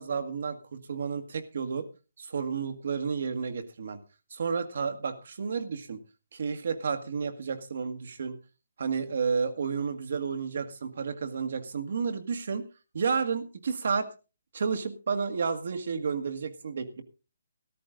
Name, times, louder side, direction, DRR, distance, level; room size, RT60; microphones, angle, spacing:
voice 1, 0.0-1.9 2.2-4.0 4.3-6.0 6.3-8.4 8.8-12.7 12.9-14.1 14.5-17.0, right 5 dB, 55° right, 8 dB, 1.8 m, -31 dB
13.5 x 13.5 x 3.8 m, 0.32 s
hypercardioid pair, 175°, 0 cm